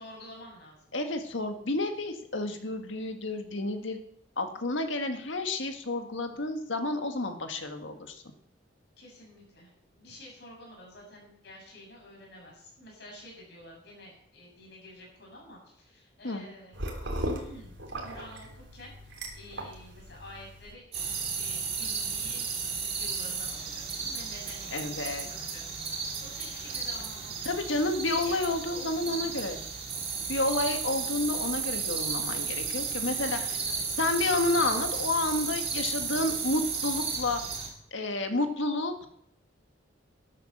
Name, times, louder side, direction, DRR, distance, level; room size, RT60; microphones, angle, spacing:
voice 1, 0.0-1.0 9.0-16.9 17.3-20.9 21.3-22.5 22.9-27.6 28.2-29.6 33.4-33.9, left 1 dB, 55° left, -1 dB, 7.0 m, -49 dB
voice 2, 0.9-4.0 4.4-8.2 16.2-16.5 24.7-25.3 27.5-29.6 30.3-33.4 34.0-37.4 37.9-39.1, left 2 dB, 75° left, 6 dB, 1.7 m, -30 dB
sound 1, 16.7-20.7, right 1 dB, 70° right, 3.3 m, -38 dB
sound 2, 20.9-37.7, right 5 dB, 30° right, 2.9 m, -33 dB
13.0 x 11.5 x 6.7 m, 0.71 s
head